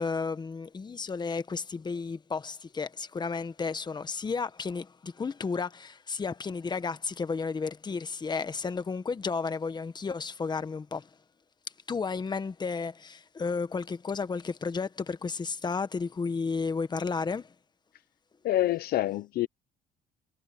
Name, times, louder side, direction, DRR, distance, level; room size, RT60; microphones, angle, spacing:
voice 1, 0.0-11.1 11.9-17.5, left 4 dB, 25° left, 1.3 m, -32 dB
voice 2, 18.4-19.5, left 14 dB, 65° left, 0.8 m, -27 dB
cardioid pair, 110°, 17 cm